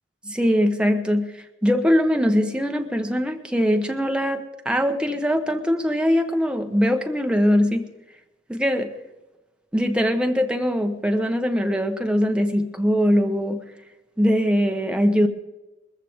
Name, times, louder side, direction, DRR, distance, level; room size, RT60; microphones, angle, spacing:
voice 1, 0.2-7.9 8.5-8.9 9.7-13.6 14.2-15.3, equal, 5° right, 5 dB, 1.0 m, -21 dB
20.0 x 15.0 x 3.6 m, 1.1 s
head